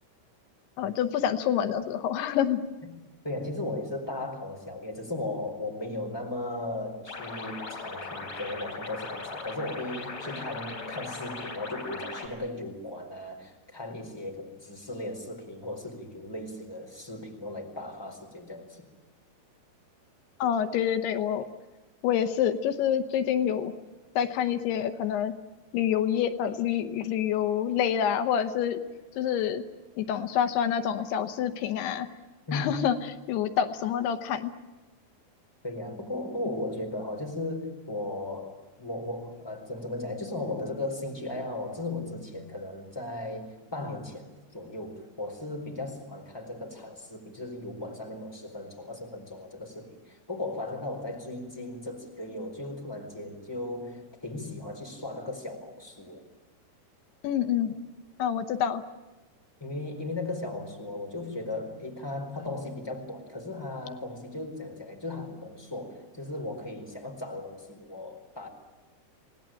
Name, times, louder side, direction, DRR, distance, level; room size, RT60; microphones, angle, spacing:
voice 1, 0.8-2.6 20.4-21.4 22.0-23.7 24.2-25.3 25.7-28.8 29.2-29.6 30.0-32.1 32.5-33.0 33.3-34.5 57.2-57.7 58.2-58.8, left 9 dB, 85° left, 9 dB, 3.1 m, -27 dB
voice 2, 3.2-18.9 32.5-32.7 35.6-56.2 59.6-68.5, left 2 dB, 5° left, 3 dB, 4.0 m, -36 dB
sound 1, 7.1-12.3, left 3 dB, 40° left, 4.6 m, -39 dB
28.0 x 19.0 x 9.1 m, 1.2 s
omnidirectional pair, 4.6 m